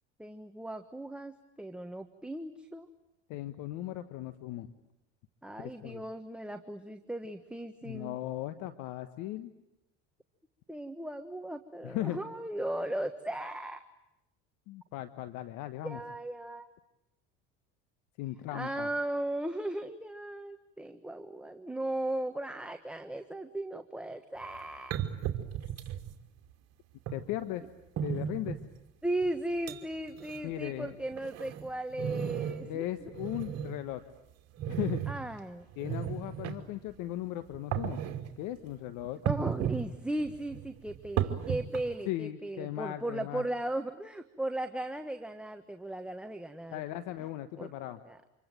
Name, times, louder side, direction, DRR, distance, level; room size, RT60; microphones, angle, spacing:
voice 1, 0.2-2.9 5.4-8.1 10.7-13.8 15.8-16.7 18.5-24.9 29.0-32.9 35.1-35.7 39.2-46.8 47.6-47.7 48.0-48.2, right 1 dB, 5° right, 6 dB, 1.3 m, -37 dB
voice 2, 3.3-4.7 5.6-6.0 7.8-9.5 11.8-12.2 14.7-16.0 18.2-18.9 27.1-27.6 28.0-28.6 30.4-31.0 32.7-34.0 34.7-35.0 35.8-38.0 38.4-39.2 42.1-43.4 46.7-48.0, left 14 dB, 65° left, 10 dB, 1.3 m, -37 dB
sound 1, 24.4-24.5 24.9-26.1 27.1-27.2 28.0-28.6 29.2-29.3 29.7-29.8 30.1-30.4 30.9-32.7 33.0-33.8 34.6-35.1 35.7-36.5 37.5-38.3 39.3-39.8 40.2-42.0, right 10 dB, 50° right, 2.7 m, -34 dB
27.0 x 23.0 x 9.1 m, 0.90 s
supercardioid pair, 90°, 33 cm